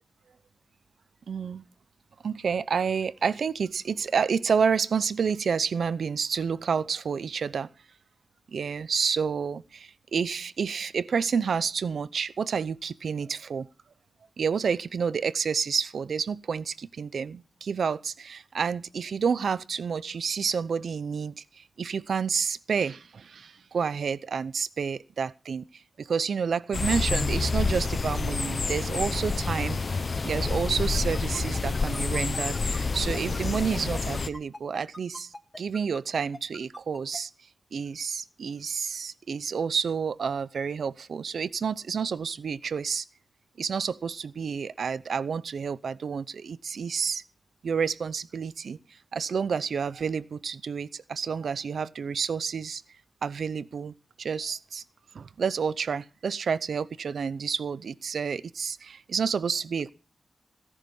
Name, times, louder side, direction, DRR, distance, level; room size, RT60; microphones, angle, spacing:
voice 1, 1.3-1.6 2.2-7.7 8.5-13.7 14.4-25.7 26.0-37.3 37.7-43.0 43.6-47.2 47.6-48.8 49.1-52.8 53.2-54.8 55.1-59.9, right 6 dB, 70° right, 0.6 m, -29 dB
sound 1, 26.7-34.3, left 4 dB, 40° left, 0.8 m, -28 dB
sound 2, 30.9-37.2, left 1 dB, 15° left, 1.4 m, -43 dB
17.0 x 11.0 x 5.5 m
wide cardioid pair, 135°, 0 cm